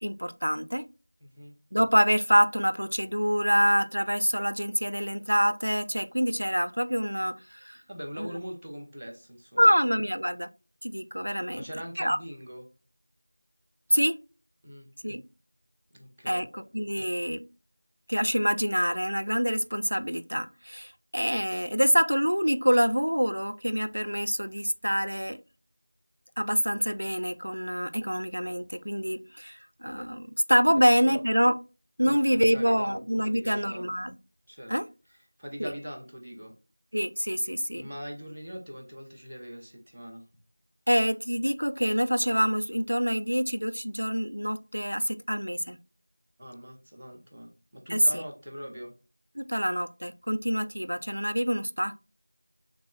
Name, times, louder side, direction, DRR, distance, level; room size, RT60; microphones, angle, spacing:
voice 1, 0.0-0.9 1.7-7.8 8.2-8.3 9.6-10.5 10.8-11.6 12.0-12.2 13.9-14.2 15.0-15.2 16.3-17.5 18.1-25.4 26.4-31.6 32.0-34.2 34.7-34.9 35.6-35.7 36.9-37.9 40.9-45.8 47.9-48.2 49.4-52.0, equal, 90° right, 0.4 m, -26 dB
voice 2, 1.2-1.6 7.9-9.8 11.6-12.7 14.6-15.2 15.9-16.4 30.7-31.2 32.0-33.9 34.5-34.7 35.4-36.5 37.7-40.2 46.4-48.9, equal, ahead, 0.5 m, -42 dB
4.9 x 3.5 x 2.3 m
figure-of-eight pair, 175°, 0 cm